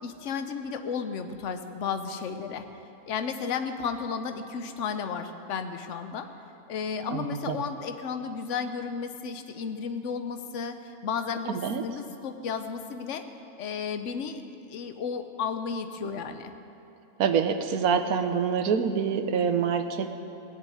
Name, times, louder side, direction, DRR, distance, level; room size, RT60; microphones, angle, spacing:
voice 1, 0.0-2.7 3.0-6.3 6.7-10.8 11.0-13.2 13.6-14.4 14.7-16.5, left 6 dB, 60° left, 8 dB, 1.1 m, -33 dB
voice 2, 7.1-7.6 11.5-11.8 17.2-20.1, right 6 dB, 80° right, 8 dB, 1.4 m, -26 dB
17.0 x 7.3 x 9.2 m, 2.9 s
omnidirectional pair, 1.5 m